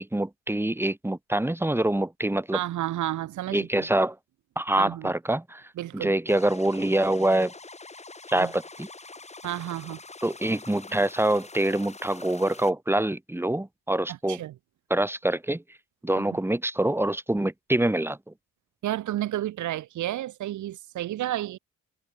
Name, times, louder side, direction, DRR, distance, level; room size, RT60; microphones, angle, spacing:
voice 1, 0.0-2.6 3.5-4.2 4.6-5.6 5.9-7.5 8.3-8.9 10.2-14.4 14.9-15.6 16.0-18.2, right 1 dB, 10° right, 3.5 m, -25 dB
voice 2, 2.5-3.9 4.8-5.1 5.8-6.1 8.3-8.5 9.4-10.0 14.1-14.5 16.2-16.4 18.8-21.6, right 13 dB, 75° right, 1.5 m, -31 dB
sound 1, 6.3-12.7, left 3 dB, 20° left, 6.1 m, -45 dB
cardioid pair, 90°, 30 cm